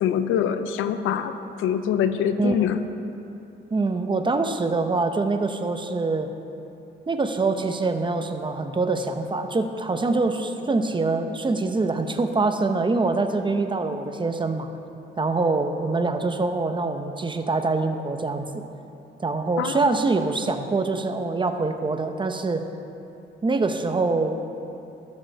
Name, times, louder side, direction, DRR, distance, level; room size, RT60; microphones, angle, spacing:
voice 1, 0.0-1.3 1.6-2.8 19.6-19.9, left 8 dB, 85° left, 10 dB, 0.6 m, -24 dB
voice 2, 3.7-6.3 7.1-14.7 15.2-18.6 19.2-22.7 23.4-24.4, right 3 dB, 25° right, 7 dB, 0.8 m, -24 dB
13.0 x 6.4 x 6.6 m, 2.8 s
cardioid pair, 90°, 20 cm